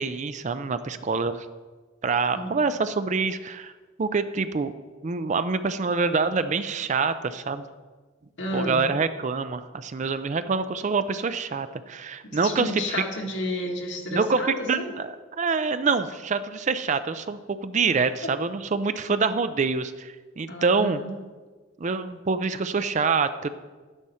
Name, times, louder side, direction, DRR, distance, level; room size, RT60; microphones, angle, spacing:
voice 1, 0.0-1.5 2.0-3.7 4.0-4.7 5.0-7.6 8.5-13.0 14.1-21.0 21.8-23.5, right 4 dB, 40° right, 12 dB, 0.4 m, -26 dB
voice 2, 8.4-8.8 12.3-14.9 18.2-18.3 20.5-21.1, left 1 dB, 70° left, 1 dB, 1.8 m, -31 dB
10.5 x 9.8 x 4.3 m, 1.4 s
head